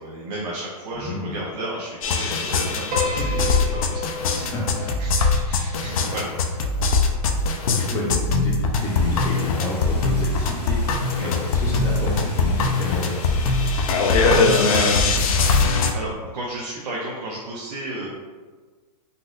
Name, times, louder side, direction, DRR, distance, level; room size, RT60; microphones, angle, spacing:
voice 1, 0.0-3.5 3.9-4.0 4.3-4.5 4.8-6.6 11.2-11.3 14.1-15.6 15.9-18.1, right 1 dB, 80° right, -4 dB, 0.8 m, -32 dB
voice 2, 0.9-1.4 3.2-3.3 4.1-4.9 6.8-6.9 7.3-8.5 8.8-13.5, left 2 dB, 15° left, -5 dB, 0.7 m, -30 dB
sound 1, 2.0-15.9, left 3 dB, 60° left, 0.4 m, -21 dB
Piano, 2.9-7.3, left 4 dB, 35° right, 0.6 m, -33 dB
Water, 8.8-14.8, left 1 dB, 75° left, 1.1 m, -40 dB
3.9 x 2.4 x 2.4 m, 1.4 s
hypercardioid pair, 155°, 21 cm